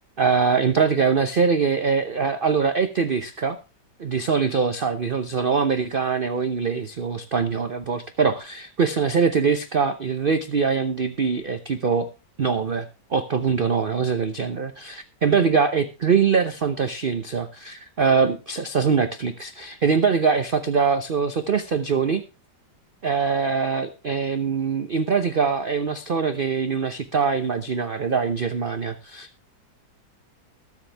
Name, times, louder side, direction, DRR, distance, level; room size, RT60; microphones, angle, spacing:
voice 1, 0.2-3.6 4.0-12.1 12.4-22.2 23.0-29.5, right 5 dB, 45° right, 9 dB, 0.7 m, -23 dB
21.0 x 7.2 x 3.4 m, 0.30 s
omnidirectional pair, 1.9 m